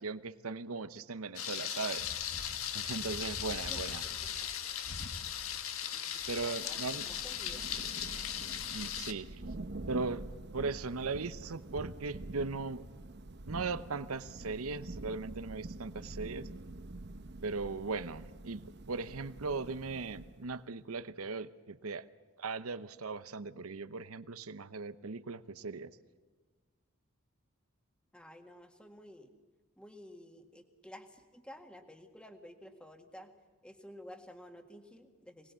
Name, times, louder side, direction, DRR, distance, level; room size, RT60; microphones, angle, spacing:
voice 1, 0.0-2.0 2.7-4.0 6.3-7.0 8.7-9.3 9.9-10.2 10.5-12.9 13.5-16.5 17.4-22.0 22.4-25.9, right 4 dB, 85° right, 14 dB, 0.8 m, -38 dB
Thunder, 1.4-9.1, left 9 dB, 80° left, 1.5 m, -38 dB
voice 2, 3.7-4.5 5.9-7.7 28.1-29.3 29.8-33.3 33.6-35.5, equal, 5° left, 6 dB, 1.7 m, -52 dB
Thunder / Rain, 6.5-20.6, right 2 dB, 50° right, 0.9 m, -46 dB
24.5 x 19.5 x 8.3 m, 1.4 s
head